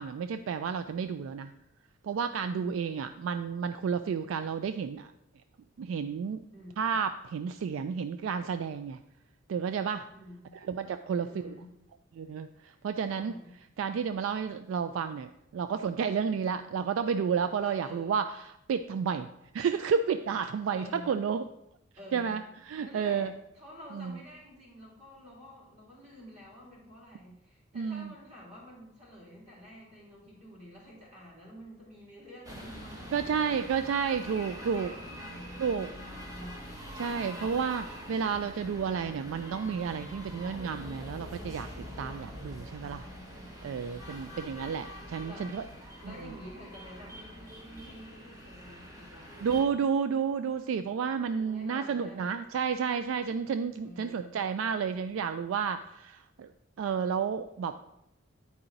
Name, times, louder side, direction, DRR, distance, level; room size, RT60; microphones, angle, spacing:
voice 1, 0.0-1.5 2.0-5.1 5.8-6.4 6.8-9.0 9.5-10.0 10.7-11.5 12.1-13.4 13.8-19.3 19.5-21.4 22.1-23.3 23.9-24.1 27.8-28.1 33.1-34.9 35.6-35.9 37.0-41.7 42.0-43.1 43.6-45.6 46.1-46.2 49.4-56.5 56.8-57.7, right 6 dB, 75° right, 10 dB, 0.3 m, -31 dB
voice 2, 2.5-3.0 6.5-7.0 10.1-10.6 11.1-11.7 13.1-13.6 17.6-18.2 20.7-21.3 21.9-22.5 22.8-33.4 34.0-36.7 44.0-44.7 45.2-45.7 46.0-49.9 51.4-52.2 53.8-54.4, left 1 dB, 35° right, -5 dB, 2.9 m, -50 dB
sound 1, 32.4-49.6, equal, 20° right, 1.1 m, -44 dB
8.9 x 4.8 x 3.9 m, 0.83 s
head